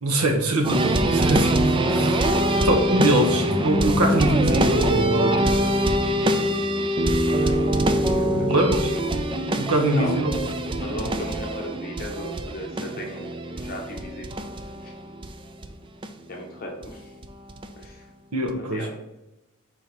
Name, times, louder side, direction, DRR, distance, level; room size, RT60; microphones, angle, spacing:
voice 1, 0.0-2.3 2.6-5.6 8.3-8.9 9.5-10.4 18.3-18.9, right 1 dB, 90° right, 1 dB, 1.1 m, -23 dB
sound 1, 0.6-15.3 15.6-15.7 16.0-16.1 16.8-16.9 17.2-17.9 18.5-18.6, right 1 dB, 25° right, 0.4 m, -23 dB
voice 2, 7.2-8.5 9.0-9.1 9.9-10.1 10.8-14.3 16.3-17.0 17.8-17.9 18.6-18.9, left 1 dB, 40° left, 0 dB, 0.9 m, -36 dB
5.3 x 4.6 x 4.5 m, 0.97 s
head